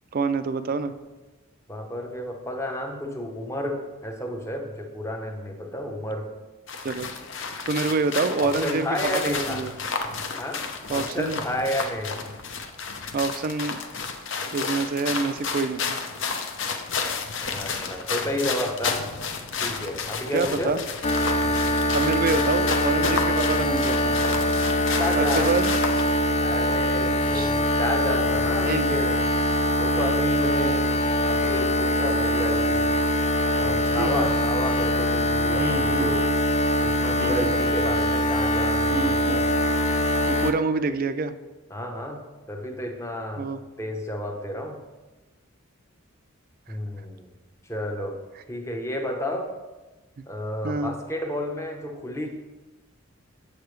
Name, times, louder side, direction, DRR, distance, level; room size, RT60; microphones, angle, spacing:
voice 1, 0.1-0.9 6.8-7.1 7.7-9.8 10.9-11.4 13.1-13.8 14.5-16.0 20.3-20.8 21.9-24.2 25.2-25.7 27.3-27.5 28.7-29.0 30.4-30.7 34.0-34.3 35.6-36.1 37.2-37.5 38.9-39.4 40.3-41.3 43.4-43.6 50.6-51.0, right 4 dB, 40° right, 11 dB, 0.3 m, -27 dB
voice 2, 1.7-6.3 8.4-9.7 10.4-10.6 10.9-12.2 17.4-19.1 19.6-20.8 24.9-25.5 26.4-29.2 29.8-31.0 31.3-32.9 33.5-36.4 36.8-39.5 41.7-43.5 43.8-44.8 46.7-47.3 47.6-48.2 48.5-49.5 50.3-52.3, left 1 dB, 15° left, 3 dB, 0.7 m, -31 dB
sound 1, 6.7-26.2, left 5 dB, 60° left, 0.7 m, -32 dB
sound 2, 21.0-40.5, left 1 dB, 30° left, 0.3 m, -23 dB
7.5 x 6.7 x 3.2 m, 1.1 s
head